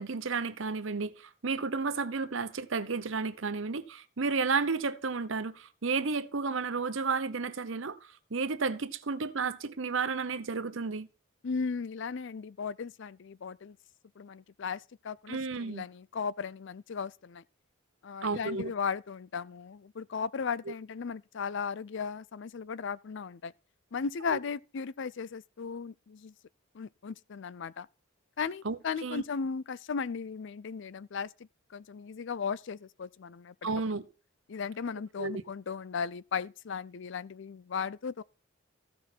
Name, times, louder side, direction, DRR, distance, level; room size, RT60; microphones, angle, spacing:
voice 1, 0.0-11.1 15.3-15.8 18.2-18.7 20.7-20.8 24.3-24.4 28.6-29.2 33.6-34.0 35.2-35.4, right 4 dB, 65° right, 0.8 m, -32 dB
voice 2, 11.4-13.8 14.2-17.4 18.0-23.5 23.9-26.3 26.7-27.9 28.4-31.3 31.7-33.7 34.5-38.2, left 5 dB, 60° left, 0.4 m, -36 dB
15.0 x 6.1 x 4.4 m
head